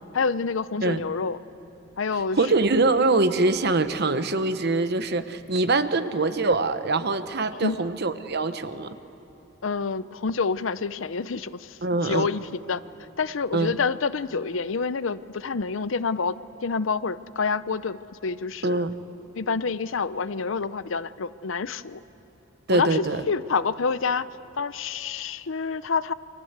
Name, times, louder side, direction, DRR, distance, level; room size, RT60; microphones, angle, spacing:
voice 1, 0.1-1.4 2.0-2.4 7.6-7.8 9.6-12.8 13.2-16.4 16.6-18.9 19.3-22.0 22.7-24.3 24.5-26.1, left 5 dB, 75° left, 15 dB, 0.7 m, -27 dB
voice 2, 2.4-9.0 11.8-12.3 13.5-13.7 18.6-18.9 22.7-23.2, right 3 dB, 55° right, 11 dB, 1.1 m, -23 dB
30.0 x 24.5 x 8.1 m, 3.0 s
head